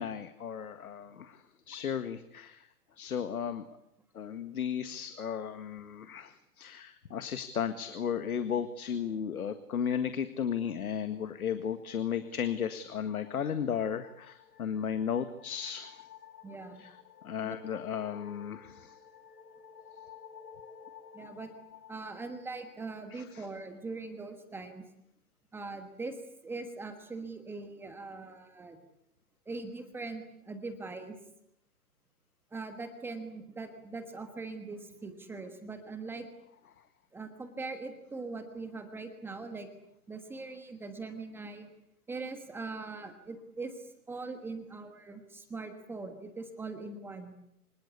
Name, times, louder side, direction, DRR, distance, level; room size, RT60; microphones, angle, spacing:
voice 1, 0.0-2.7 3.0-3.7 4.1-16.1 16.8-16.9 17.2-19.0 23.1-23.5, left 8 dB, 70° left, 10 dB, 1.9 m, -35 dB
sound 1, 11.8-23.2, left 7 dB, 85° left, 2.7 m, -54 dB
voice 2, 16.4-16.8 17.4-17.5 21.1-21.5 21.9-24.8 25.5-26.2 26.4-28.8 29.5-31.1 32.5-36.3 37.1-39.7 40.1-41.7 42.1-47.3, right 3 dB, 5° right, 7 dB, 1.3 m, -41 dB
26.0 x 21.0 x 8.4 m, 0.77 s
hypercardioid pair, 155°, 46 cm